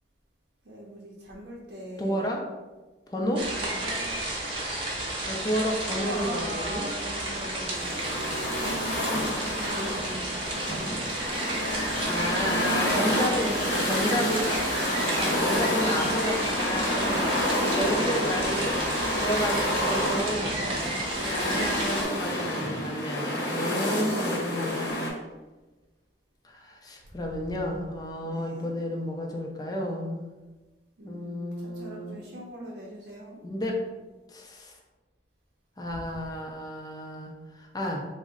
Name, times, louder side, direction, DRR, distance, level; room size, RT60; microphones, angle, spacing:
voice 1, 0.6-2.3 3.2-4.2 6.0-8.5 9.5-11.6 13.0-16.0 17.3-18.3 20.2-21.9 24.0-24.7 28.2-28.7 31.0-33.4 35.9-36.1, equal, 60° right, -4 dB, 0.6 m, -40 dB
voice 2, 2.0-2.4 3.1-3.4 5.3-6.9 9.8-9.9 11.8-14.5 15.2-17.3 17.7-20.5 21.3-24.7 26.4-30.3 31.0-32.2 33.4-33.8 34.3-34.7 35.8-38.0, equal, 20° left, 1 dB, 0.5 m, -31 dB
sound 1, 3.3-22.0, right 1 dB, 30° right, 0.8 m, -32 dB
sound 2, 7.1-25.1, left 1 dB, 65° left, 0.8 m, -29 dB
3.6 x 2.1 x 3.7 m, 1.2 s
head